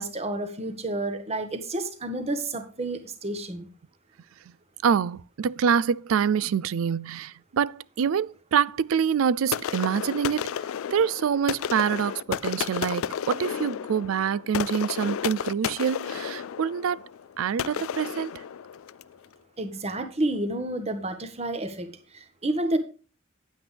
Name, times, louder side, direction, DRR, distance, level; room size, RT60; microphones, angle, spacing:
voice 1, 0.0-3.7 17.7-17.8 19.6-21.9 22.1-22.8, right 1 dB, 30° right, 1.4 m, -30 dB
voice 2, 4.8-10.5 10.9-17.0 17.4-18.3, right 7 dB, 75° right, 0.4 m, -26 dB
sound 1, 9.5-19.2, left 8 dB, 80° left, 0.4 m, -32 dB
10.0 x 8.8 x 3.4 m
head